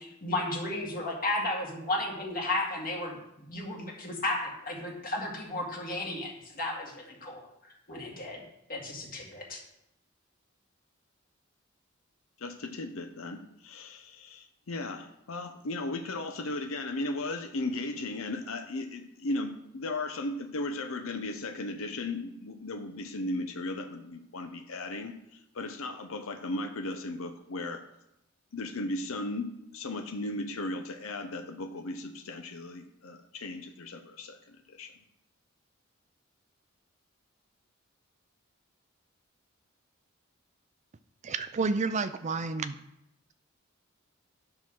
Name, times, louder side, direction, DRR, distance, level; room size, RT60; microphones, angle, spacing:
voice 1, 0.0-3.2 3.5-7.5 7.9-8.4 8.7-9.6, left 2 dB, 45° left, -2 dB, 2.0 m, -33 dB
voice 2, 12.4-27.8 28.5-34.9, left 2 dB, 85° left, 5 dB, 0.7 m, -36 dB
voice 3, 41.2-42.8, right 4 dB, 35° right, 11 dB, 0.4 m, -30 dB
9.8 x 3.8 x 6.1 m, 0.82 s
head